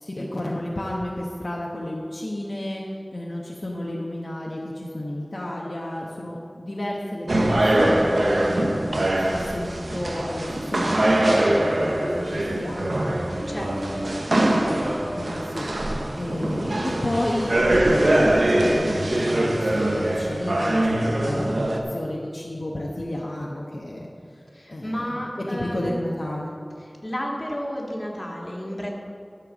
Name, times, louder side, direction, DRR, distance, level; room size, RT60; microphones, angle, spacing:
voice 1, 0.0-2.8 3.1-13.0 14.3-18.3 18.6-24.4 24.7-25.2 25.5-26.5, left 1 dB, 60° left, -3 dB, 1.1 m, -32 dB
sound 1, 7.3-21.8, right 1 dB, 80° right, 1.0 m, -23 dB
voice 2, 13.5-14.0 21.2-21.5 24.5-25.9 27.0-28.9, equal, 30° left, -2 dB, 2.1 m, -32 dB
13.5 x 4.6 x 7.1 m, 2.6 s
wide cardioid pair, 50°, 0 cm